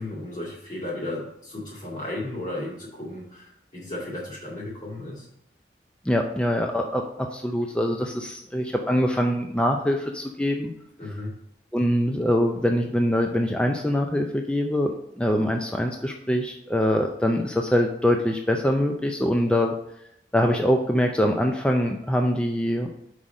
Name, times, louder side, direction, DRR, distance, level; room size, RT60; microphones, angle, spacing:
voice 1, 0.0-5.3 11.0-11.3, left 1 dB, 45° left, -11 dB, 2.5 m, -34 dB
voice 2, 6.0-10.7 11.7-19.8 20.3-22.9, equal, 5° left, 2 dB, 0.4 m, -24 dB
5.7 x 4.9 x 5.2 m, 0.77 s
head